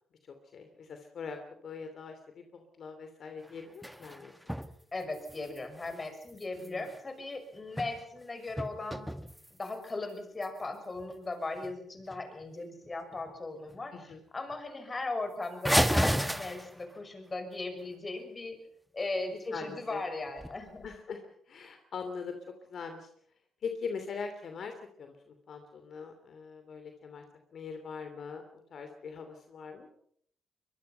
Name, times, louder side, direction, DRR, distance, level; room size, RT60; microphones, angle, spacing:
voice 1, 0.5-4.3 6.6-6.9 13.9-14.2 19.5-20.0 20.8-21.2 21.5-22.4 22.6-23.1 23.6-27.2 27.5-29.9, left 5 dB, 55° left, 6 dB, 2.8 m, -42 dB
coat hangers dropped, 3.4-4.7 5.0-7.0 7.5-8.2 8.5-9.9 10.4-10.5 11.0-11.1 11.6-11.7 12.0-12.5 12.9-13.3 13.7-13.8 14.1-14.2 14.5-14.6 15.6-17.0 20.3-20.9, equal, ahead, 1.4 m, -33 dB
voice 2, 4.9-9.1 9.5-18.6 18.9-20.9, left 2 dB, 25° left, 7 dB, 5.8 m, -38 dB
23.5 x 22.5 x 5.7 m, 0.66 s
cardioid pair, 90°, 0 cm